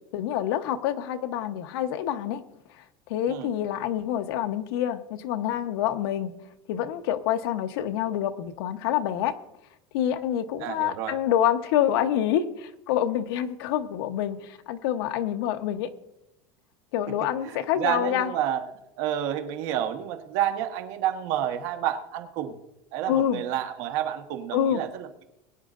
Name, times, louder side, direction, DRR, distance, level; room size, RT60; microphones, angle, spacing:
voice 1, 0.1-2.4 3.1-6.3 6.7-9.3 9.9-15.9 16.9-18.3 23.1-23.4 24.5-24.8, left 10 dB, 75° left, 8 dB, 1.0 m, -27 dB
voice 2, 10.6-11.1 17.4-18.6 19.0-22.6 22.9-25.2, right 11 dB, 55° right, 5 dB, 1.4 m, -29 dB
22.0 x 9.6 x 2.6 m, 0.86 s
cardioid pair, 175°, 13 cm